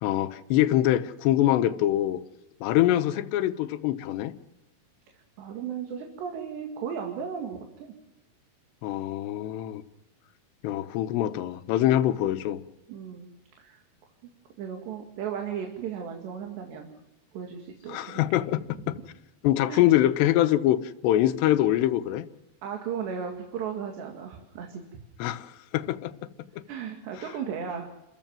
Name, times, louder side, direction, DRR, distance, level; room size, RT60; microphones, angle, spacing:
voice 1, 0.0-2.2 2.6-4.3 8.8-9.8 10.6-12.6 17.9-18.6 18.9-19.0 19.4-22.3 25.2-26.1 26.5-26.6, left 13 dB, 85° left, 10 dB, 3.1 m, -24 dB
voice 2, 5.4-7.9 12.9-13.3 13.6-13.8 14.6-16.9 17.3-18.4 18.8-18.9 19.7-19.9 22.6-24.8 26.7-27.9, right 7 dB, 80° right, 3 dB, 4.3 m, -35 dB
29.5 x 15.0 x 7.5 m, 0.95 s
omnidirectional pair, 4.9 m